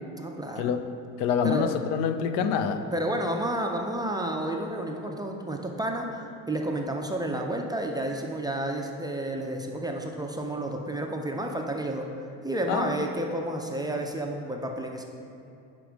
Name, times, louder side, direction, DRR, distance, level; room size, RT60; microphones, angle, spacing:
voice 1, 0.2-0.7 1.4-1.7 2.9-6.1 6.5-12.1 12.4-15.0, right 1 dB, 10° right, 1 dB, 0.3 m, -31 dB
voice 2, 1.2-2.9 12.7-12.9, left 7 dB, 85° left, 9 dB, 0.5 m, -26 dB
5.2 x 4.6 x 5.0 m, 2.7 s
supercardioid pair, 100°, 41 cm